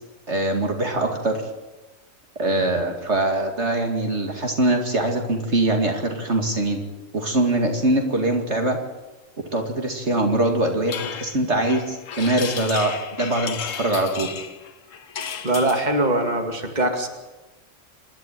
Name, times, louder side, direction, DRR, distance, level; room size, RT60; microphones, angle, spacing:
voice 1, 0.3-1.4 2.4-6.8 7.1-8.8 9.5-12.9 13.2-14.3, right 1 dB, 60° right, 3 dB, 2.7 m, -22 dB
sound 1, 10.9-16.0, left 7 dB, 80° left, 1.4 m, -34 dB
voice 2, 15.4-17.1, right 1 dB, 35° right, 4 dB, 2.5 m, -22 dB
27.0 x 12.0 x 9.2 m, 1.1 s
omnidirectional pair, 1.3 m